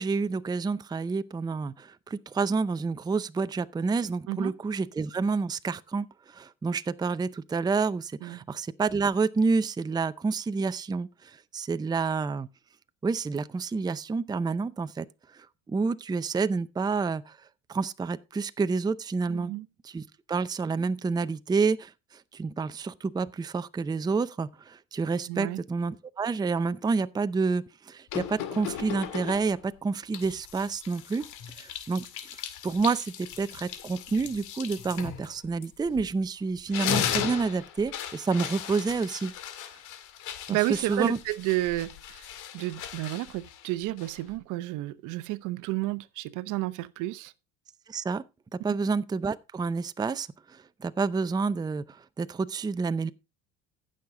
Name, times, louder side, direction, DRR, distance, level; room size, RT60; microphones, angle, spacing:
voice 1, 0.0-12.5 13.0-15.0 15.3-17.4 17.7-19.5 19.8-31.2 31.6-32.1 32.6-39.3 40.5-41.2 47.9-48.2 48.5-53.1, right 4 dB, 10° right, 0.6 m, -29 dB
voice 2, 19.3-19.7 25.3-25.6 40.5-42.3 42.5-47.3, right 18 dB, 60° right, 0.8 m, -31 dB
sound 1, 28.1-29.6 30.1-36.2 36.5-44.4, left 9 dB, 60° left, 2.2 m, -37 dB
15.0 x 6.5 x 3.7 m
supercardioid pair, 90°, 34 cm